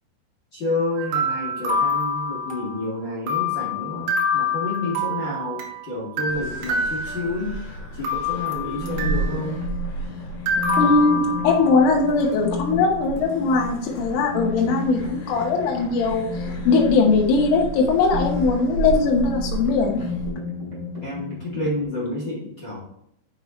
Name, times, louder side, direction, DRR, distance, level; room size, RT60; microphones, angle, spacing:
voice 1, 0.5-7.6 7.9-9.6 21.0-22.8, left 2 dB, 35° left, -6 dB, 1.9 m, -29 dB
sound 1, 1.0-2.8 3.3-5.8 6.2-7.6 8.0-9.4 10.5-11.9, left 2 dB, 70° right, 3.6 m, -26 dB
sound 2, 6.3-20.3, right 3 dB, 65° left, 3.9 m, -33 dB
sound 3, 8.8-21.8, left 4 dB, 20° right, 3.0 m, -33 dB
voice 2, 10.8-16.3 16.7-20.0, left 4 dB, 90° left, 0 dB, 3.7 m, -20 dB
8.9 x 6.8 x 3.1 m, 0.74 s
omnidirectional pair, 5.6 m